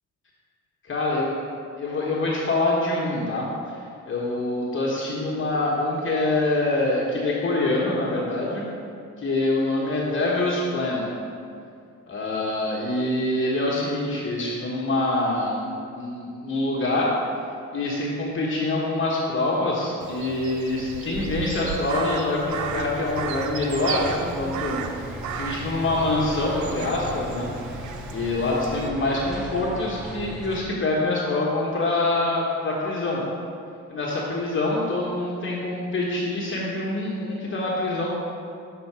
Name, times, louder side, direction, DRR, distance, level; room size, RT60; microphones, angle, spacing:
voice 1, 0.9-1.3 1.8-3.8 4.1-8.6 9.2-11.1 12.1-17.1 17.7-24.8 25.3-27.5 28.1-33.2 33.9-38.1, left 2 dB, 40° left, -4 dB, 1.1 m, -25 dB
Crow, 20.0-28.9, right 7 dB, 70° right, 0.5 m, -35 dB
sound 1, 22.5-30.6, equal, ahead, 0.5 m, -37 dB
6.5 x 3.9 x 5.9 m, 2.4 s
cardioid pair, 90°, 30 cm